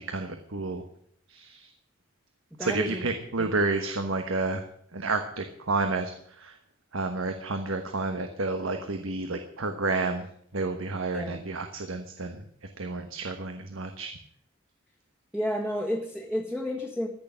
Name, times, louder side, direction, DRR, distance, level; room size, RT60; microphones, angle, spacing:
voice 1, 0.1-0.8 1.3-1.6 2.6-4.6 4.9-6.1 6.4-6.5 6.9-10.3 10.5-12.4 12.8-14.1, right 3 dB, 80° right, 6 dB, 1.2 m, -30 dB
voice 2, 2.5-3.1 3.4-3.5 11.1-11.4 15.3-17.1, equal, 5° right, -3 dB, 1.6 m, -31 dB
14.5 x 6.7 x 9.6 m, 0.67 s
head